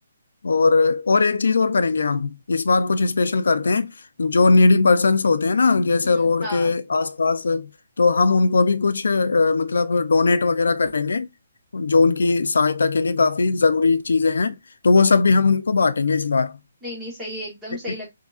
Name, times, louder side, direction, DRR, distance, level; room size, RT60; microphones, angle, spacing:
voice 1, 0.4-3.9 4.2-7.7 8.0-11.3 11.7-14.5 14.8-16.6, left 4 dB, 80° left, 0.5 m, -19 dB
voice 2, 6.0-6.7 16.8-18.1, left 1 dB, 5° right, 1.3 m, -34 dB
3.9 x 2.7 x 2.4 m
hypercardioid pair, 175°, 0 cm